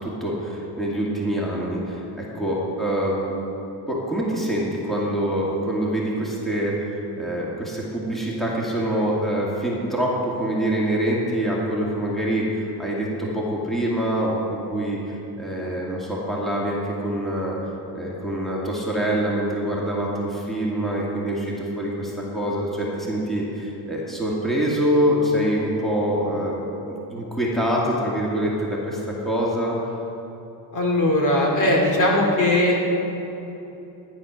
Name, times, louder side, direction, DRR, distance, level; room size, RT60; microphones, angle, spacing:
voice 1, 0.0-3.4 3.9-17.6 17.9-26.5 26.8-29.8, right 1 dB, ahead, -5 dB, 2.2 m, -25 dB
voice 2, 30.7-32.8, left 1 dB, 40° left, -1 dB, 2.4 m, -19 dB
14.0 x 10.0 x 6.3 m, 3.0 s
cardioid pair, 140°, 47 cm